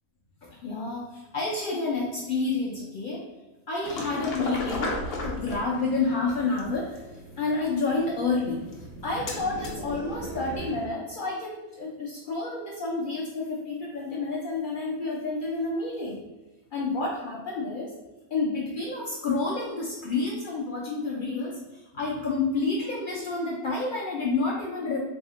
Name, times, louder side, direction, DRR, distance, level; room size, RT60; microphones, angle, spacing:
voice 1, 0.4-3.3 3.7-8.6 9.0-16.2 16.7-18.0 18.3-25.0, left 3 dB, 75° left, -3 dB, 0.4 m, -29 dB
sound 1, 3.8-10.8, left 1 dB, 55° left, 0.8 m, -36 dB
sound 2, 8.5-11.0, right 1 dB, 85° right, 1.1 m, -41 dB
3.5 x 2.1 x 3.6 m, 1.1 s
omnidirectional pair, 1.5 m